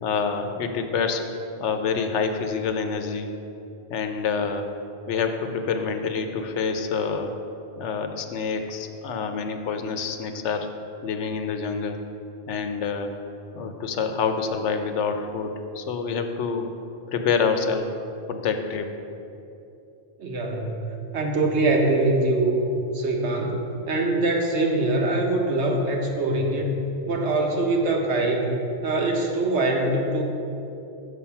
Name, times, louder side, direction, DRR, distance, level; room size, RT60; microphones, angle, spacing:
voice 1, 0.0-1.2 1.6-3.3 3.9-4.7 5.1-7.3 7.8-10.7 11.0-12.0 12.5-13.1 13.5-16.7 17.1-17.9 18.3-19.0, left 5 dB, 80° left, 6 dB, 1.0 m, -27 dB
voice 2, 20.2-23.6 23.9-28.4 28.8-30.2, right 2 dB, 70° right, 1 dB, 1.3 m, -23 dB
7.2 x 6.6 x 5.7 m, 2.8 s
omnidirectional pair, 1.2 m